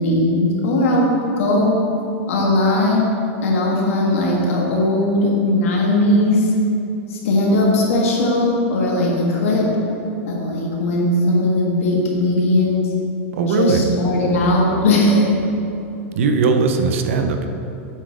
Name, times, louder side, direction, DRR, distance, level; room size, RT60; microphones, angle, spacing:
voice 1, 0.0-1.7 2.3-3.1 3.4-6.5 7.1-9.7 10.3-12.9 13.5-15.3, left 1 dB, 80° left, -2 dB, 1.7 m, -18 dB
voice 2, 13.3-13.9 16.2-17.5, right 4 dB, 75° right, 6 dB, 0.7 m, -18 dB
8.1 x 4.2 x 4.8 m, 2.8 s
supercardioid pair, 170°, 7 cm